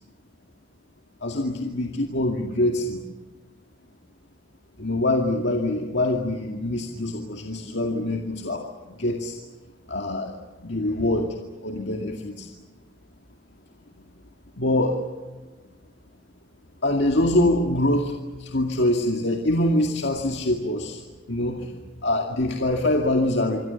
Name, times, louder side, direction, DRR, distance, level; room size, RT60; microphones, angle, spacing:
voice 1, 1.2-3.0 4.8-9.4 9.9-10.3 10.6-11.4 11.6-12.5 14.6-15.0 16.8-18.1 18.4-21.0 21.3-21.7 22.0-23.6, left 1 dB, 60° left, 2 dB, 2.2 m, -24 dB
27.0 x 24.0 x 7.1 m, 1.2 s
head